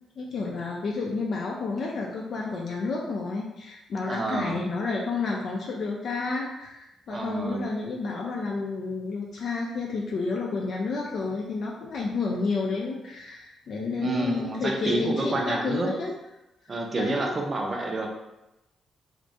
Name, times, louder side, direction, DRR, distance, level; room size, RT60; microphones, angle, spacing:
voice 1, 0.2-16.2 17.0-17.3, left 4 dB, 55° left, -2 dB, 0.3 m, -30 dB
voice 2, 4.1-4.6 7.1-7.7 14.0-15.9 16.7-18.1, right 2 dB, 40° right, 1 dB, 0.5 m, -28 dB
2.3 x 2.1 x 2.7 m, 0.93 s
figure-of-eight pair, 40°, 0 cm